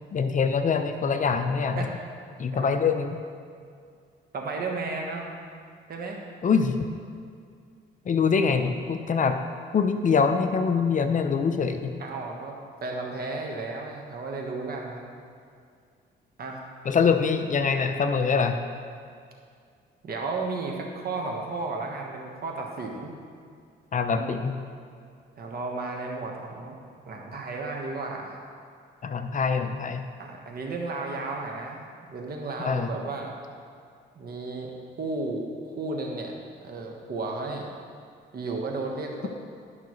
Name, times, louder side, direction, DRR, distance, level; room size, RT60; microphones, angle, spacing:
voice 1, 0.1-1.9 2.4-3.2 6.4-6.9 8.1-9.4 9.7-11.9 16.9-18.6 23.9-24.6 29.0-30.0 32.6-32.9, left 5 dB, 40° left, 7 dB, 0.5 m, -24 dB
voice 2, 4.3-5.3 5.9-6.2 12.0-12.6 12.8-15.0 16.4-16.7 20.0-23.1 24.1-24.3 25.4-26.8 27.0-28.4 30.2-33.3 34.1-36.3 36.6-37.7 38.3-39.3, right 3 dB, 50° right, 0 dB, 1.3 m, -33 dB
11.5 x 5.8 x 3.1 m, 2.2 s
cardioid pair, 90°, 20 cm